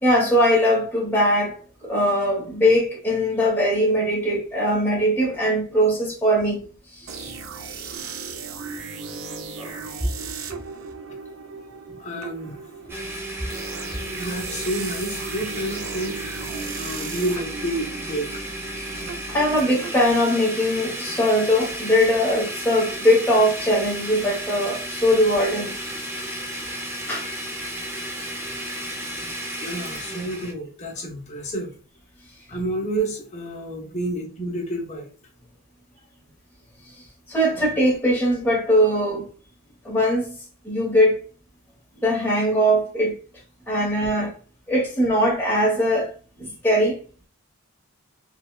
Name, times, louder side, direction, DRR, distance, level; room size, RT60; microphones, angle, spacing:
voice 1, 0.0-1.5 1.8-6.6 9.6-9.7 19.3-25.7 27.1-27.3 37.3-39.2 39.8-40.3 40.6-41.1 42.0-43.1 43.7-44.3 44.7-46.1 46.4-46.9, equal, 10° left, 1.0 m, -20 dB
sound 1, 7.1-20.8, right 5 dB, 65° right, 0.5 m, -37 dB
voice 2, 11.9-12.6 14.2-16.2 16.7-18.3 29.6-31.7 32.5-35.1, right 1 dB, 30° left, 0.8 m, -29 dB
Domestic sounds home sounds, 12.9-30.5, right 1 dB, 10° right, 0.6 m, -33 dB
4.5 x 2.2 x 2.3 m
head